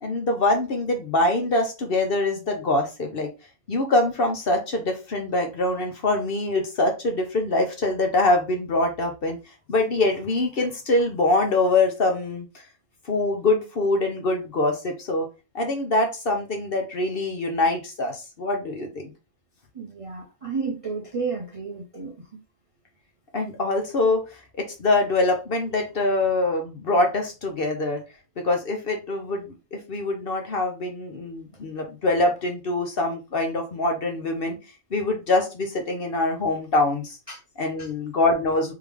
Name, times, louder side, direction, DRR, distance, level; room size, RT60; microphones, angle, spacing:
voice 1, 0.0-3.3 3.7-9.4 9.7-12.6 13.0-15.3 15.5-19.1 23.3-24.2 24.6-28.0 28.4-34.6 34.9-37.2 37.6-38.7, left 2 dB, 50° left, 0.9 m, -24 dB
voice 2, 19.7-22.4 37.3-37.4 37.8-37.9, right 5 dB, 35° right, 0.5 m, -32 dB
3.6 x 3.3 x 3.3 m
omnidirectional pair, 1.4 m